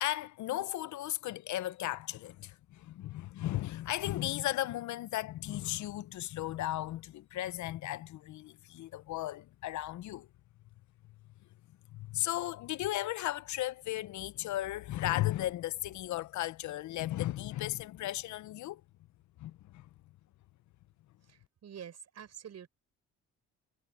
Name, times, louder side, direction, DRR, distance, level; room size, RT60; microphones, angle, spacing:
voice 1, 0.0-10.3 11.9-18.8 19.4-19.9, left 15 dB, 70° left, 0.6 m, -35 dB
voice 2, 21.2-22.7, right 8 dB, 60° right, 6.9 m, -48 dB
cardioid pair, 90°, 30 cm